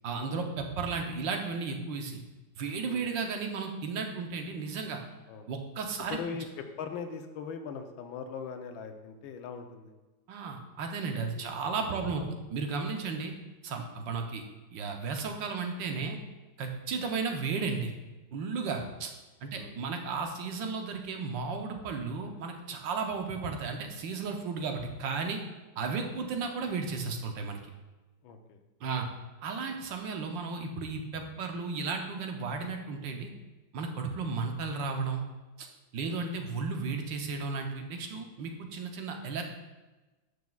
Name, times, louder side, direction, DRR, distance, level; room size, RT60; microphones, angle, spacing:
voice 1, 0.0-2.2 2.6-5.0 5.5-6.2 10.3-12.2 12.5-13.3 13.6-14.4 14.7-16.2 16.6-17.9 18.3-19.1 19.4-25.4 25.8-27.6 28.8-29.1 29.4-33.3 33.7-35.2 35.6-35.7 35.9-39.4, right 4 dB, 70° right, 4 dB, 1.5 m, -34 dB
voice 2, 6.1-9.9 11.3-12.2 13.0-13.1 18.7-18.9 19.5-19.7 28.2-28.6 36.0-36.2, left 6 dB, 80° left, 6 dB, 1.5 m, -41 dB
12.0 x 6.4 x 2.3 m, 1.1 s
omnidirectional pair, 2.2 m